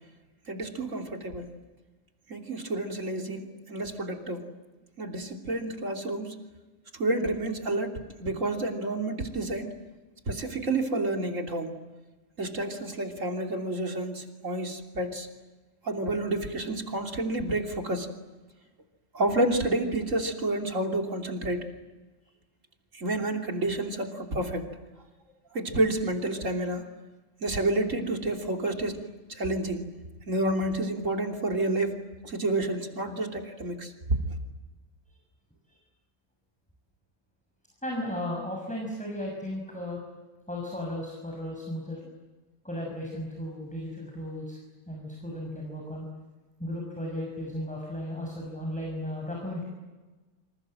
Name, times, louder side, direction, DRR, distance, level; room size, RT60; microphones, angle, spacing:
voice 1, 0.5-1.5 2.3-4.5 5.0-6.4 7.0-7.9 8.2-9.7 10.3-11.7 12.4-15.3 15.8-18.1 19.1-21.6 22.9-24.7 25.5-26.8 27.4-29.9 30.3-33.9, right 2 dB, 80° right, 3 dB, 3.4 m, -29 dB
voice 2, 37.8-40.0 40.5-42.0 42.6-44.6 44.9-46.1 46.6-49.7, left 1 dB, 5° left, 0 dB, 6.2 m, -35 dB
28.5 x 26.5 x 7.8 m, 1.2 s
omnidirectional pair, 1.3 m